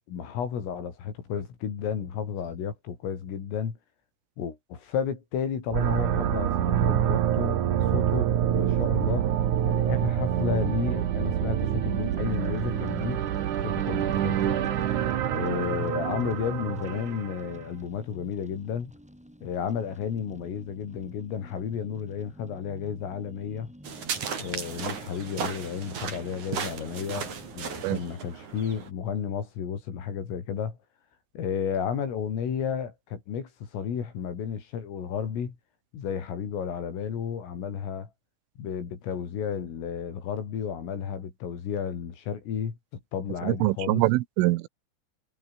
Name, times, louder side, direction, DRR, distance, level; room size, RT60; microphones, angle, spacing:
voice 1, 0.1-3.8 4.4-7.6 7.9-9.3 9.6-13.2 13.6-14.8 15.3-18.9 19.4-23.7 24.4-30.8 31.4-35.6 35.9-38.1 38.6-42.8 43.1-44.1, left 7 dB, 85° left, 7.1 m, -32 dB
sound 1, 5.7-17.6, right 10 dB, 60° right, 2.1 m, -26 dB
sound 2, 11.5-28.0, equal, ahead, 6.6 m, -51 dB
sound 3, 23.8-28.9, right 6 dB, 40° right, 4.3 m, -35 dB
voice 2, 43.4-44.7, right 19 dB, 85° right, 3.4 m, -24 dB
omnidirectional pair, 5.8 m